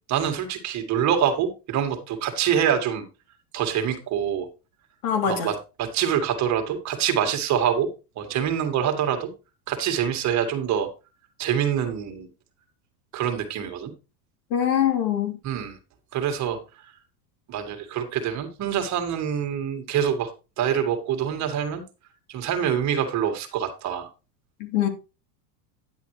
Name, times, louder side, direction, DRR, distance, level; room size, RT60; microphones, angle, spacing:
voice 1, 0.1-3.0 3.5-4.5 5.3-7.9 8.2-9.3 9.7-10.9 11.4-12.3 13.1-13.9 15.4-15.8 16.1-16.6 17.5-20.3 20.6-21.8 22.3-24.1, right 9 dB, 35° right, 1.9 m, -25 dB
voice 2, 5.0-5.5 14.5-15.4 24.6-24.9, left 9 dB, 75° left, 3.2 m, -23 dB
10.0 x 8.1 x 3.2 m
supercardioid pair, 140°, 46 cm